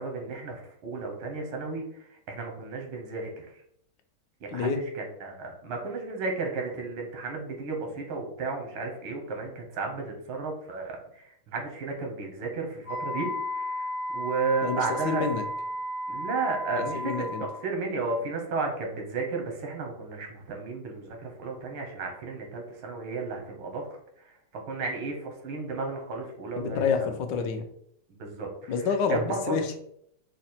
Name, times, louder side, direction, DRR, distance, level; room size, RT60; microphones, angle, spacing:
voice 1, 0.0-3.5 4.4-13.3 13.5-15.3 16.1-17.2 17.6-23.9 24.2-26.9 28.1-28.7 29.1-29.5, right 3 dB, 90° right, 2 dB, 1.8 m, -33 dB
voice 2, 4.5-4.8 14.6-15.4 16.8-17.4 26.6-27.7 28.7-29.8, left 5 dB, 75° left, 6 dB, 1.1 m, -28 dB
Wind instrument woodwind instrument, 12.8-17.6, equal, 15° left, 0.4 m, -33 dB
4.9 x 2.1 x 4.2 m, 0.72 s
omnidirectional pair, 2.3 m